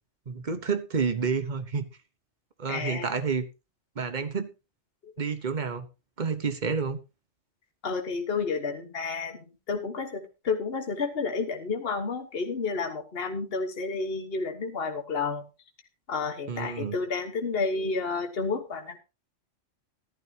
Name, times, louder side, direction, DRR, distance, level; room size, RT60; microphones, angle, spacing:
voice 1, 0.3-1.8 2.6-3.5 4.0-4.5 5.2-5.9 6.2-7.0 16.5-16.9, right 5 dB, 40° right, 1.2 m, -29 dB
voice 2, 2.7-3.1 5.0-5.1 7.8-15.4 16.1-19.0, left 4 dB, 55° left, 1.6 m, -31 dB
14.5 x 12.0 x 2.8 m
omnidirectional pair, 1.3 m